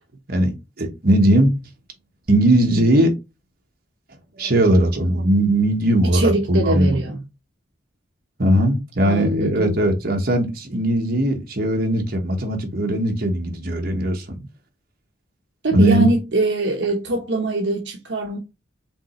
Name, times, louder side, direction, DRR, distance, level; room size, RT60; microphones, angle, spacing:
voice 1, 0.3-1.5 2.3-3.1 4.4-7.0 8.4-14.4 15.7-16.1, right 1 dB, 50° right, 1.2 m, -19 dB
voice 2, 6.1-7.2 9.0-9.8 15.6-18.4, right 1 dB, 70° right, 0.9 m, -22 dB
5.2 x 3.2 x 3.0 m
head